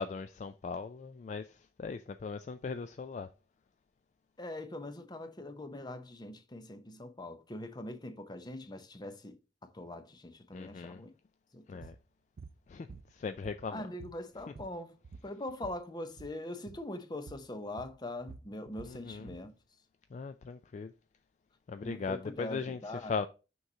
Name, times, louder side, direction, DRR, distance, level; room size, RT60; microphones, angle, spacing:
voice 1, 0.0-1.5 1.8-3.3 10.5-11.0 11.7-12.0 12.7-12.9 13.1-13.8 18.9-19.3 20.1-20.9 21.7-23.3, left 5 dB, 40° left, 0.3 m, -38 dB
voice 2, 4.4-11.1 11.5-11.9 13.7-15.0 15.2-19.5 21.8-23.2, left 1 dB, 25° left, 0.7 m, -42 dB
sound 1, 11.8-12.0 12.4-12.6 12.9-13.7 14.0-15.8 16.1-16.4 16.7-16.9 17.3-17.5 17.8-19.5, right 4 dB, 55° right, 0.4 m, -50 dB
6.3 x 3.1 x 5.4 m
head